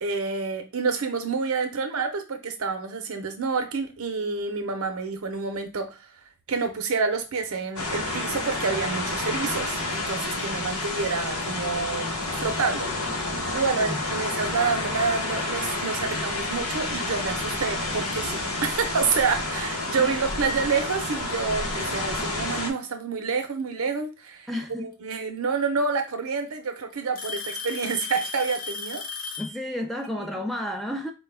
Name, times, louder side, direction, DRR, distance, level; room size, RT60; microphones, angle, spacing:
voice 1, 0.0-6.1 6.5-12.1 12.4-12.9 13.5-24.5 24.8-29.0 30.2-30.4, right 4 dB, 70° right, 0.7 m, -28 dB
sound 1, 7.8-22.7, left 2 dB, 75° left, 0.8 m, -29 dB
Alarm / Tick-tock, 15.6-15.9 16.7-16.8 17.6-17.7 19.4-19.5 20.7-20.8 22.1-22.5 24.3-24.4 25.6-25.7 26.0-26.5 27.1-29.6, left 4 dB, 40° left, 0.6 m, -35 dB
voice 2, 24.5-24.9 29.4-31.1, left 1 dB, ahead, 0.3 m, -31 dB
4.3 x 2.2 x 3.3 m
head